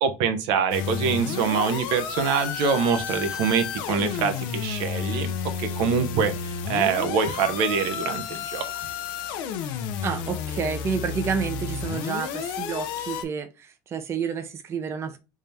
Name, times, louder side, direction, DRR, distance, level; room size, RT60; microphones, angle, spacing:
voice 1, 0.0-5.3 5.6-8.6, right 6 dB, 75° right, 0.8 m, -24 dB
sound 1, 0.7-13.2, left 7 dB, 80° left, 0.6 m, -31 dB
voice 2, 9.7-15.2, right 6 dB, 35° right, 0.6 m, -30 dB
3.6 x 2.8 x 3.3 m
cardioid pair, 130°, 8 cm